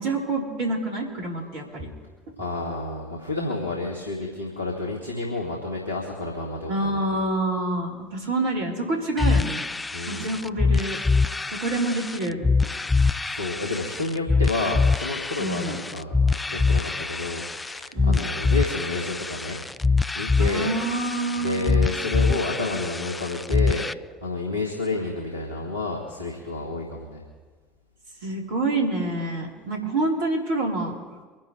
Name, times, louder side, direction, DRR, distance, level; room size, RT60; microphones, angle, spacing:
voice 1, 0.0-1.9 6.7-9.6 10.1-11.0 11.5-12.8 15.4-15.8 17.9-18.3 20.4-21.8 28.2-30.9, right 2 dB, 65° right, -1 dB, 4.1 m, -27 dB
voice 2, 2.4-7.1 9.9-10.3 13.2-19.6 20.1-20.7 21.4-23.8 24.2-27.2, left 3 dB, 90° right, -3 dB, 2.1 m, -30 dB
sound 1, 9.2-23.9, left 4 dB, 15° left, 0.4 m, -24 dB
25.0 x 11.5 x 3.4 m, 1.4 s
figure-of-eight pair, 65°, 0 cm